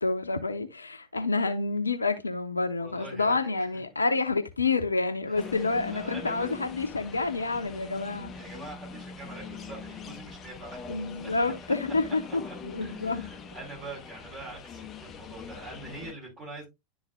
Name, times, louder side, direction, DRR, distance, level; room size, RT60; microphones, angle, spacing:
voice 1, 0.0-8.3 10.9-13.3, left 3 dB, 80° left, 0.8 m, -28 dB
voice 2, 2.8-3.7 5.3-5.5 5.9-6.5 7.7-8.0 8.3-10.9 11.8-11.9 12.4-12.5 12.8-16.7, right 2 dB, 30° right, 4.2 m, -44 dB
sound 1, 5.4-16.1, left 5 dB, 30° left, 0.7 m, -43 dB
11.5 x 4.0 x 2.3 m
figure-of-eight pair, 85°, 0 cm